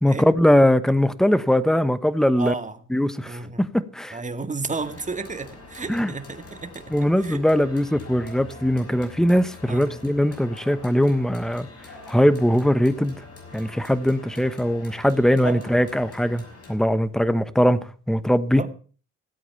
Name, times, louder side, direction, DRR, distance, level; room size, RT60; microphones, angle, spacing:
voice 1, 0.0-2.5 2.9-4.2 5.9-6.1 6.9-11.7 12.1-13.2 13.5-16.4 16.7-17.8 18.1-18.6, equal, ahead, 1.1 m, -20 dB
voice 2, 2.4-2.8 3.2-3.7 4.1-6.9 7.2-7.5 9.7-9.9 15.4-15.7 18.6-18.7, right 3 dB, 25° right, 1.9 m, -32 dB
sound 1, 4.7-16.8, left 2 dB, 50° left, 6.5 m, -44 dB
17.0 x 8.5 x 6.9 m
cardioid pair, 90°, 30 cm